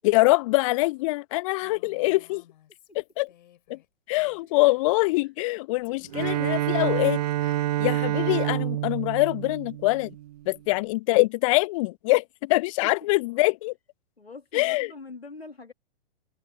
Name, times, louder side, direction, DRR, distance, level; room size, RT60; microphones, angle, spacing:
voice 1, 0.0-2.4 2.9-3.3 3.7-3.8 4.1-10.1 10.5-13.7 14.5-14.9, left 22 dB, 35° left, 0.7 m, -24 dB
Female speech woman speaking, 1.6-4.9 5.8-8.0, left 12 dB, 50° left, 3.9 m, -59 dB
Bowed string instrument, 6.1-10.4, right 14 dB, 40° right, 0.5 m, -27 dB
voice 2, 14.2-15.7, left 3 dB, 85° left, 1.9 m, -43 dB
figure-of-eight pair, 110°, 30 cm